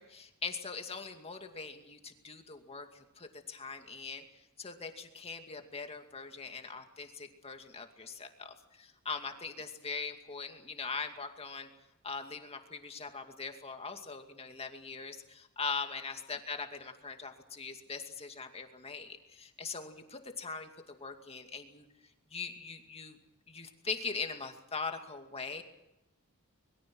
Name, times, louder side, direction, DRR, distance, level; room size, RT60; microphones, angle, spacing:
voice 1, 0.0-4.2 4.6-11.7 12.0-21.8 22.3-23.2 23.5-25.6, left 4 dB, 30° left, 5 dB, 2.3 m, -41 dB
25.0 x 22.0 x 6.2 m, 0.94 s
head